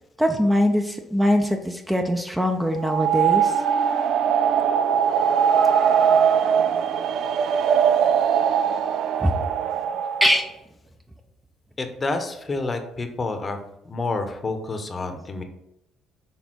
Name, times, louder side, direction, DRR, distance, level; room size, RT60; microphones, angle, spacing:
voice 1, 0.2-3.6 9.2-9.3 10.2-10.5, equal, 5° right, 5 dB, 0.6 m, -22 dB
sound 1, 2.8-10.4, right 8 dB, 65° right, 0.3 m, -21 dB
voice 2, 11.8-13.6 13.8-15.4, left 3 dB, 30° left, 6 dB, 0.9 m, -28 dB
6.3 x 3.4 x 4.6 m, 0.85 s
supercardioid pair, 75°, 0 cm